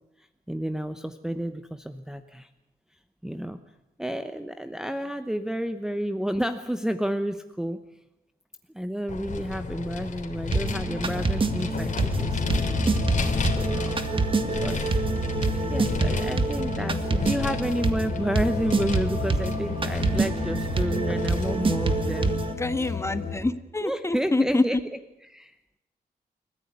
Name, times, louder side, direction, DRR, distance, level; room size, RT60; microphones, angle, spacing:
voice 1, 0.5-2.5 3.2-3.6 4.0-7.8 8.7-12.7 13.5-14.0 14.5-14.9 15.7-22.4 22.8-22.9 23.8-25.5, equal, 5° right, 7 dB, 1.0 m, -31 dB
Vehicle, 9.1-22.3, left 5 dB, 50° left, 3.3 m, -32 dB
sound 1, 10.5-22.5, right 4 dB, 35° right, 1.9 m, -27 dB
sound 2, 12.5-23.4, left 5 dB, 85° left, 3.5 m, -34 dB
voice 2, 22.6-24.6, left 2 dB, 15° left, 11 dB, 1.5 m, -26 dB
29.5 x 15.0 x 9.7 m, 0.90 s
wide cardioid pair, 135°, 16 cm